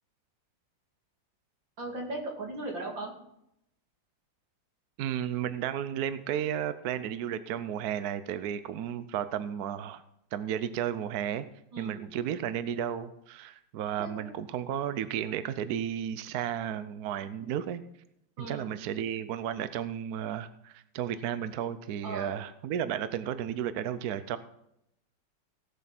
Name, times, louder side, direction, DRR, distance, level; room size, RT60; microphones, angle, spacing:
voice 1, 1.8-3.1 11.7-12.0 14.0-14.3 18.4-18.7 22.0-22.4, right 2 dB, 80° right, 0 dB, 3.4 m, -38 dB
voice 2, 5.0-10.0 10.3-11.5 11.8-17.8 18.4-24.4, right 9 dB, 65° right, 13 dB, 1.1 m, -33 dB
17.0 x 7.5 x 5.9 m, 0.79 s
omnidirectional pair, 2.0 m